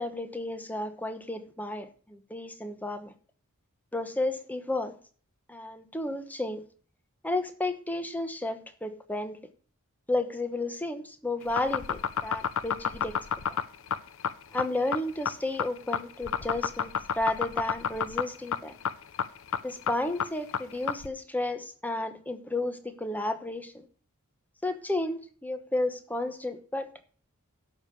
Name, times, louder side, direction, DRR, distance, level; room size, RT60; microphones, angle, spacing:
voice 1, 0.0-3.1 3.9-4.9 5.5-6.6 7.2-9.4 10.1-13.2 14.5-18.7 19.6-23.7 24.6-27.1, left 2 dB, 10° left, 9 dB, 1.0 m, -32 dB
sound 1, 11.4-21.1, left 7 dB, 65° left, 0.7 m, -30 dB
12.0 x 5.5 x 6.7 m, 0.43 s
head